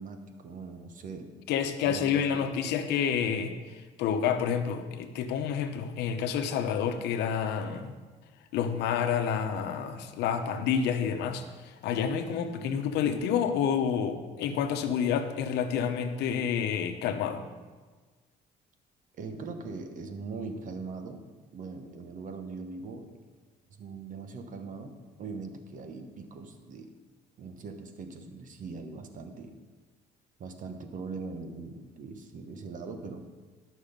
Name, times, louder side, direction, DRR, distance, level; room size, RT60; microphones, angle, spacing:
voice 1, 0.0-1.3 1.8-2.5 19.2-21.2 21.5-23.1 23.7-26.9 27.4-29.5 30.4-33.2, right 4 dB, 50° right, 6 dB, 1.2 m, -41 dB
voice 2, 1.5-7.9 8.5-17.5, left 7 dB, 80° left, 7 dB, 0.9 m, -29 dB
12.0 x 6.3 x 5.3 m, 1.4 s
cardioid pair, 110°, 17 cm